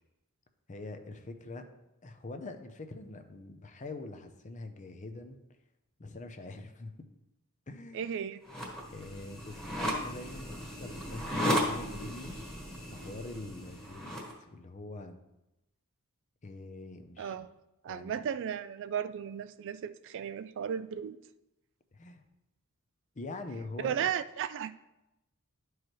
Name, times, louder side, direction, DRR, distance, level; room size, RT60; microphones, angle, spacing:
voice 1, 0.7-1.6 2.0-5.4 6.0-6.9 7.7-8.1 8.9-10.5 10.8-12.4 12.9-15.2 16.4-17.4 17.9-18.2 21.9-22.2 23.2-24.1, left 2 dB, 35° left, 7 dB, 0.6 m, -44 dB
voice 2, 7.9-8.4 17.2-17.5 17.8-21.2 23.8-24.7, right 8 dB, 55° right, 14 dB, 0.3 m, -35 dB
sound 1, 8.4-14.3, equal, ahead, 1.4 m, -35 dB
11.5 x 4.7 x 3.1 m, 0.93 s
head